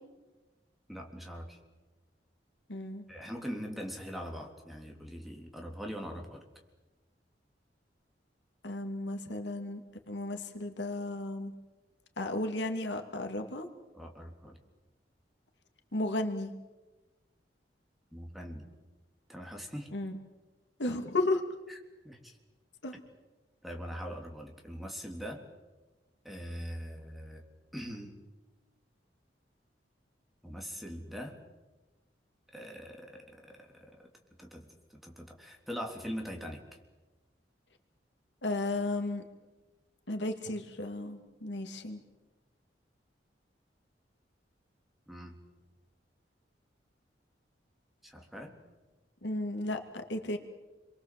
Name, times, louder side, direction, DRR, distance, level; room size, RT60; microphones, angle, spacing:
voice 1, 0.9-1.6 3.1-6.4 13.9-14.6 18.1-18.7 19.3-19.9 21.7-21.8 22.0-22.4 23.6-25.4 26.2-27.4 27.7-28.2 30.4-31.4 32.5-34.1 34.4-36.6 45.1-45.4 48.0-48.6, equal, ahead, 1 dB, 3.6 m, -42 dB
voice 2, 2.7-3.0 8.6-11.5 12.2-13.7 15.9-16.5 19.9-20.1 20.8-21.4 22.8-22.9 38.4-39.2 40.1-42.0 49.2-50.4, left 2 dB, 80° left, 5 dB, 2.7 m, -34 dB
29.5 x 23.5 x 7.8 m, 1.2 s
head